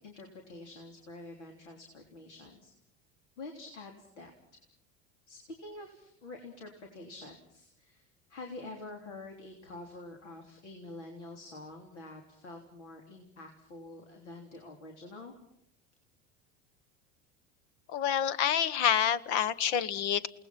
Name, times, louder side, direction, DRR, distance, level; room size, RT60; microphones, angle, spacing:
voice 1, 0.0-2.7 3.4-4.3 5.3-15.3, left 2 dB, 90° left, 3 dB, 3.5 m, -47 dB
voice 2, 17.9-20.3, left 9 dB, 70° left, 17 dB, 1.3 m, -28 dB
29.5 x 19.0 x 6.0 m, 0.74 s
hypercardioid pair, 85°, 34 cm